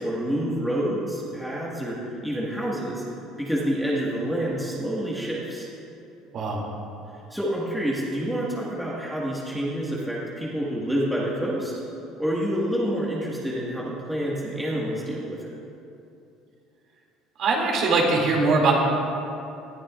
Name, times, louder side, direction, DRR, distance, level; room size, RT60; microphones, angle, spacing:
voice 1, 0.0-2.0 2.2-3.0 3.4-5.7 7.3-11.7 12.2-15.5, equal, ahead, -7 dB, 1.7 m, -28 dB
voice 2, 17.4-18.7, right 3 dB, 50° right, -2 dB, 2.5 m, -21 dB
19.0 x 13.0 x 2.5 m, 2.7 s
cardioid pair, 155°, 0 cm